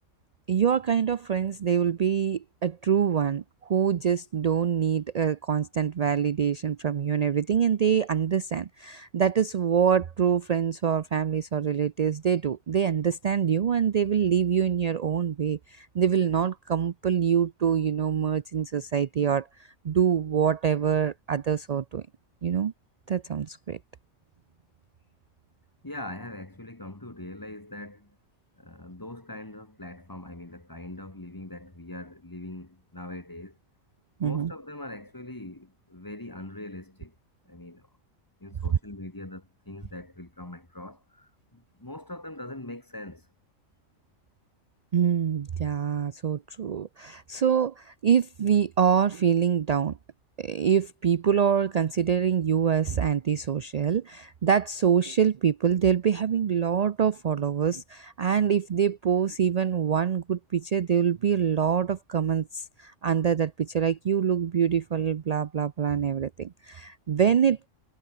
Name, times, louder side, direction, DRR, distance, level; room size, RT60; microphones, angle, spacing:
voice 1, 0.5-3.4 3.7-22.0 22.4-22.7 23.1-23.8 34.2-34.5 44.9-50.0 50.4-67.7, right 8 dB, 55° right, 0.4 m, -25 dB
voice 2, 25.8-28.2 28.6-33.6 34.2-37.1 37.4-37.9 38.4-43.3, left 1 dB, 15° left, 1.6 m, -42 dB
omnidirectional pair, 1.4 m